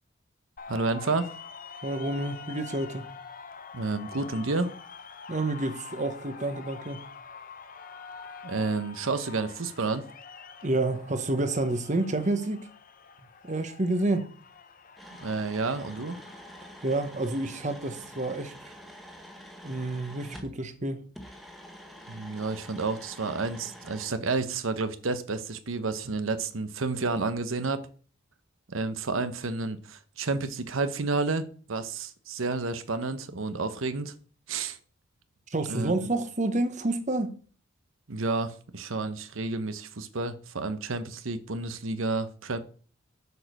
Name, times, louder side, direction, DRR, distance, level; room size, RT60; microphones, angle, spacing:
sound 1, 0.6-18.3, left 5 dB, 40° left, 0.8 m, -46 dB
voice 1, 0.7-1.3 3.7-4.7 8.4-10.1 15.2-16.2 22.1-27.9 28.7-34.1 34.5-34.8 35.7-35.9 38.1-42.6, right 3 dB, 80° right, 0.9 m, -30 dB
voice 2, 1.8-3.2 5.3-7.1 10.6-12.7 13.4-14.3 16.8-18.7 19.6-21.1 35.5-37.4, right 2 dB, 35° right, 1.0 m, -29 dB
sound 2, 15.0-20.5 21.1-24.1, equal, ahead, 1.2 m, -47 dB
7.9 x 5.1 x 6.6 m
head